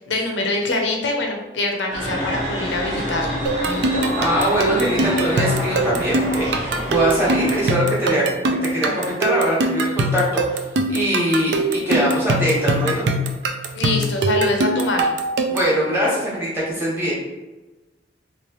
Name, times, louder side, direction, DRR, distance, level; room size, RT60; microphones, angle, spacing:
voice 1, 0.0-4.0 13.7-15.1, left 2 dB, 80° left, 2 dB, 0.7 m, -24 dB
sound 1, 1.9-7.7, equal, 40° right, 1.2 m, -27 dB
sound 2, 3.5-15.8, right 2 dB, 65° right, 0.4 m, -22 dB
voice 2, 4.2-13.1 15.5-17.1, equal, 10° right, -7 dB, 1.2 m, -22 dB
3.2 x 3.1 x 3.0 m, 1.1 s
head